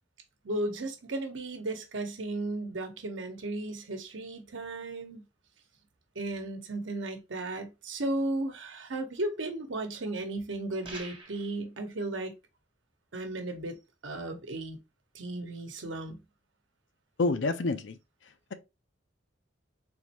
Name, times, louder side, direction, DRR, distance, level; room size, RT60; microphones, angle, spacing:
voice 1, 0.4-5.2 6.2-12.3 13.1-13.8 14.0-14.8 15.1-16.2, right 2 dB, 80° right, 0.9 m, -35 dB
sound 1, 10.8-11.6, right 3 dB, 30° right, 1.2 m, -44 dB
voice 2, 17.2-18.0, left 3 dB, 70° left, 0.5 m, -27 dB
3.8 x 3.1 x 2.9 m
head